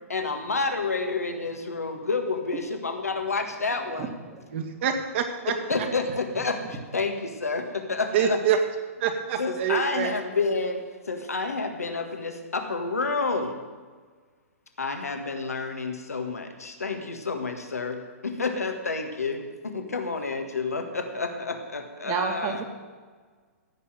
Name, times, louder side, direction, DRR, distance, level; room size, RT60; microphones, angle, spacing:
voice 1, 0.1-4.1 5.5-8.4 9.4-13.6 14.8-22.6, left 4 dB, 85° left, 5 dB, 1.7 m, -29 dB
voice 2, 4.0-4.4 22.0-22.6, right 6 dB, 35° right, 5 dB, 1.9 m, -30 dB
voice 3, 4.5-5.5 8.1-8.6 9.0-10.1, right 8 dB, 50° right, 4 dB, 2.0 m, -26 dB
15.5 x 5.8 x 9.2 m, 1.5 s
hypercardioid pair, 120°, 8 cm